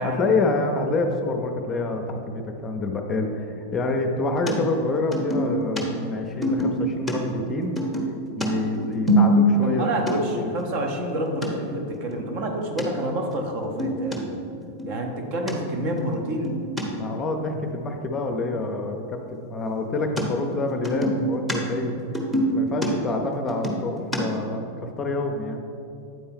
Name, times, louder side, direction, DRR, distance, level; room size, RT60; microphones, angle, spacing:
voice 1, 0.0-7.8 8.4-10.5 17.0-22.0 22.5-25.6, left 2 dB, 25° left, 4 dB, 0.6 m, -27 dB
sound 1, 4.5-4.6 5.1-5.8 6.4-7.2 7.8-9.8 10.1-10.2 10.6-10.7 10.9-11.5 11.9-12.2 12.8-12.9 13.3-13.4 13.6-14.2 14.6-15.0 15.5-15.6 16.0-16.8 20.2-20.3 20.5-21.6 21.8-24.2, equal, ahead, 1.0 m, -24 dB
voice 2, 9.6-14.4 14.8-16.6, right 1 dB, 45° right, 3 dB, 0.8 m, -28 dB
9.1 x 4.3 x 3.6 m, 2.6 s
figure-of-eight pair, 90°, 0 cm